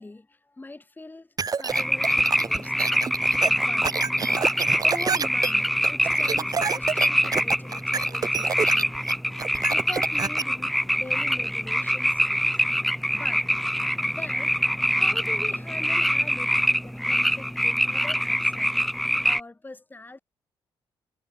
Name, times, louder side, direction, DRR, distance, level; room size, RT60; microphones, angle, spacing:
voice 1, 0.0-2.8 3.5-3.9 4.8-9.0 9.7-10.7 10.9-12.6 13.1-13.5 14.0-14.5 14.9-18.7 19.0-20.2, left 2 dB, 20° left, 4.7 m, -42 dB
sound 1, 1.4-10.4, right 5 dB, 40° right, 3.0 m, -28 dB
sound 2, 1.7-19.4, equal, ahead, 1.0 m, -24 dB
cardioid pair, 80°, 9 cm